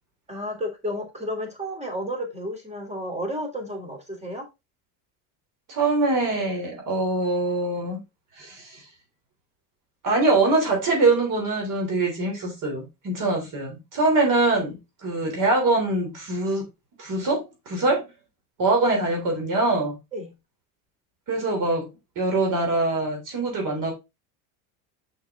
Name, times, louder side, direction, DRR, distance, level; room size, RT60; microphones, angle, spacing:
voice 1, 0.3-4.5 20.1-20.3, equal, 15° right, 3.2 m, -32 dB
voice 2, 5.7-8.0 8.4-8.8 10.0-16.6 17.0-18.0 18.6-20.0 21.3-21.9 22.1-23.9, right 2 dB, 50° right, 3.3 m, -23 dB
6.3 x 5.9 x 3.6 m
supercardioid pair, 95°, 42 cm